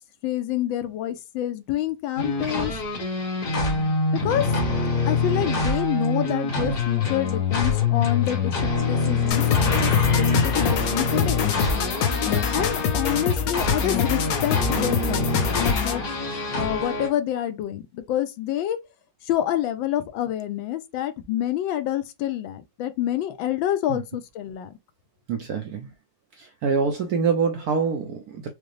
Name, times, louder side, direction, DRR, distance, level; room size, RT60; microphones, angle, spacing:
voice 1, 0.2-2.7 4.1-11.4 12.5-16.2 16.6-18.8 19.2-24.8, left 11 dB, 80° left, 1.4 m, -28 dB
sound 1, 2.2-17.1, left 4 dB, 50° left, 1.5 m, -25 dB
sound 2, 9.3-16.1, left 7 dB, 65° left, 0.9 m, -25 dB
voice 2, 25.3-25.9 26.4-28.5, right 5 dB, 70° right, 0.9 m, -25 dB
5.1 x 2.0 x 3.1 m
omnidirectional pair, 2.1 m